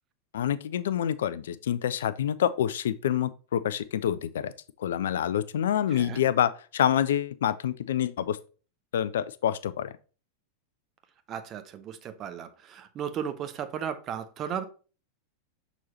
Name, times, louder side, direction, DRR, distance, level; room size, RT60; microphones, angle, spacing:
voice 1, 0.3-4.5 4.8-8.4 8.9-9.9, left 10 dB, 60° left, 0.4 m, -27 dB
voice 2, 5.9-6.2 11.3-14.6, right 8 dB, 30° right, 0.8 m, -35 dB
6.5 x 4.0 x 4.1 m
figure-of-eight pair, 90°, 0 cm